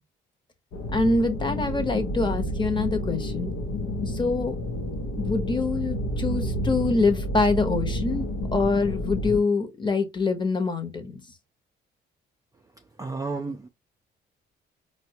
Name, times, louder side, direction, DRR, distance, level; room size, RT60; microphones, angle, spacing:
sound 1, 0.7-9.4, left 1 dB, 80° left, 0.6 m, -30 dB
voice 1, 0.9-3.5 4.0-4.6 5.2-11.2, left 3 dB, 25° left, 0.8 m, -25 dB
voice 2, 13.0-13.7, right 3 dB, 15° right, 0.4 m, -31 dB
4.2 x 2.1 x 2.8 m
cardioid pair, 90°, 20 cm